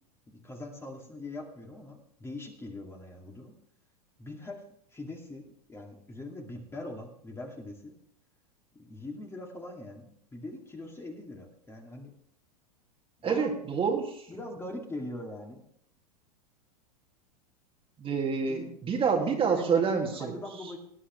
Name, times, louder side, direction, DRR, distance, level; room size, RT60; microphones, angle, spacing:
voice 1, 0.3-3.5 4.2-4.6 4.9-7.9 8.7-12.1 13.2-13.6 14.3-15.6 18.4-18.7 19.1-20.8, left 1 dB, 10° left, 1 dB, 2.3 m, -42 dB
voice 2, 13.2-14.3 18.0-20.3, right 6 dB, 25° right, 1 dB, 2.2 m, -27 dB
18.5 x 10.0 x 3.2 m, 0.68 s
hypercardioid pair, 105°, 20 cm